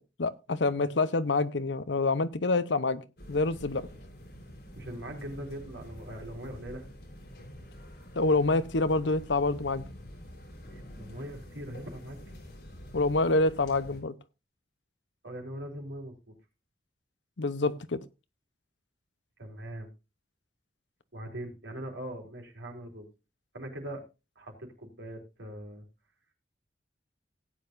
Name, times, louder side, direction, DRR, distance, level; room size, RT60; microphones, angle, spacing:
voice 1, 0.2-3.0 3.3-3.9 8.1-9.8 12.9-14.1 17.4-18.0, left 3 dB, 90° left, 0.9 m, -27 dB
sound 1, 3.2-14.0, equal, 65° left, 4.0 m, -47 dB
voice 2, 4.8-6.9 10.7-12.4 15.2-16.3 19.4-19.9 21.1-23.1 23.5-24.0 24.4-25.8, right 1 dB, 90° right, 3.9 m, -41 dB
17.5 x 8.8 x 2.6 m
head